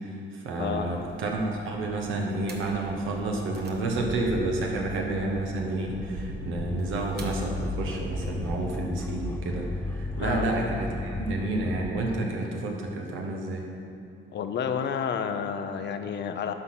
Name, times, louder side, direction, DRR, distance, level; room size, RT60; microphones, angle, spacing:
voice 1, 0.0-13.6, right 2 dB, 85° right, 0 dB, 1.4 m, -30 dB
voice 2, 0.6-0.9 10.2-10.5 14.3-16.5, left 7 dB, 60° left, 7 dB, 0.7 m, -30 dB
sound 1, 0.9-8.8, right 1 dB, 55° right, 1.2 m, -40 dB
sound 2, 6.6-11.9, left 2 dB, 10° left, 0.4 m, -34 dB
11.5 x 4.1 x 5.9 m, 2.6 s
cardioid pair, 90°, 20 cm